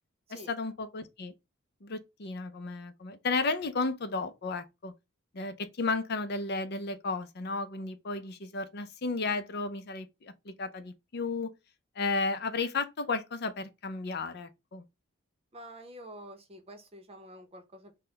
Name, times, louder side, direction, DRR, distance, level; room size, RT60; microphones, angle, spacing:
voice 1, 0.3-1.3 1.8-4.9 5.3-11.5 12.0-14.8, left 3 dB, 50° left, 0.5 m, -33 dB
voice 2, 15.5-18.0, right 1 dB, 30° right, 0.8 m, -48 dB
3.9 x 2.2 x 3.9 m
head